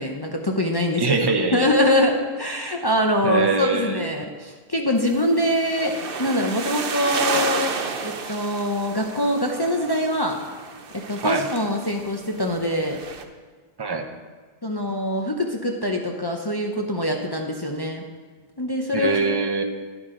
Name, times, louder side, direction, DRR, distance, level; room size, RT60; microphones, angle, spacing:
voice 1, 0.0-1.1 1.5-10.4 10.9-13.0 14.6-18.0 18.6-19.2, left 1 dB, 25° left, 1 dB, 0.7 m, -24 dB
voice 2, 1.0-1.7 3.2-4.0 11.2-11.5 13.8-14.1 18.9-19.6, right 3 dB, 25° right, 5 dB, 0.8 m, -23 dB
sound 1, 5.0-13.2, right 5 dB, 60° right, 0.9 m, -32 dB
11.0 x 10.0 x 3.8 m, 1.5 s
omnidirectional pair, 1.1 m